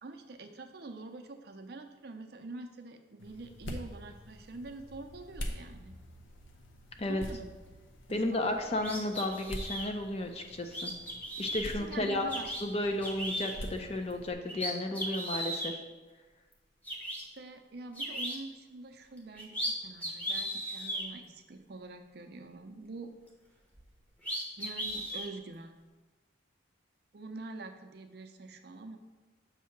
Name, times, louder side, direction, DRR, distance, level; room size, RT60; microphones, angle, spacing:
voice 1, 0.0-6.0 7.0-7.6 8.1-8.6 11.7-12.5 17.3-23.1 24.6-25.7 27.1-29.0, right 3 dB, 55° right, 6 dB, 0.5 m, -45 dB
sound 1, 3.2-14.3, equal, 85° left, 0.7 m, -46 dB
voice 2, 8.1-10.9 11.4-12.2 12.6-15.8, left 1 dB, 30° left, 5 dB, 0.5 m, -33 dB
sound 2, 8.8-9.9 10.7-11.6 12.3-12.6 13.0-13.6 14.1-14.2 14.5-15.7 16.5-16.6 16.8-17.2 18.0-18.4 19.2-19.7 20.0-21.0 23.8-23.9 24.2-25.3, equal, 10° left, 0.8 m, -36 dB
7.2 x 2.8 x 5.8 m, 1.3 s
head